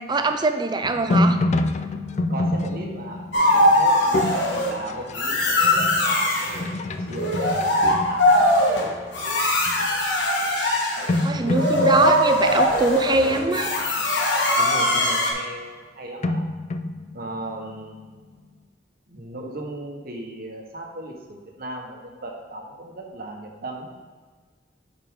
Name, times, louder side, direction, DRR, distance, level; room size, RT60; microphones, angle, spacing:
voice 1, 0.0-1.4 9.3-9.4 11.2-13.7, right 3 dB, 25° right, 6 dB, 0.5 m, -23 dB
sound 1, 0.8-9.1 9.5-9.9 10.7-10.8 11.1-13.6 16.2-18.0, left 2 dB, 40° left, 0.4 m, -27 dB
voice 2, 2.3-8.7 14.6-16.4 17.1-18.2 19.1-23.9, right 1 dB, 55° right, 1 dB, 1.3 m, -37 dB
sound 2, 3.3-4.7 5.1-6.6 7.1-15.3, left 1 dB, 80° left, 1.5 m, -21 dB
9.4 x 4.9 x 3.7 m, 1.4 s
head